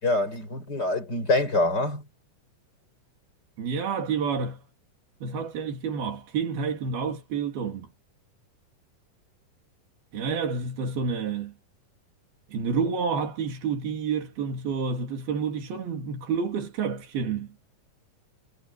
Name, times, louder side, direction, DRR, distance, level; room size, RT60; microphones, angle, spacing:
voice 1, 0.0-2.1, left 2 dB, 25° left, 6.3 m, -25 dB
voice 2, 3.6-4.6 5.2-7.9 10.1-11.5 12.5-17.5, right 5 dB, 85° right, 5.1 m, -29 dB
omnidirectional pair, 4.2 m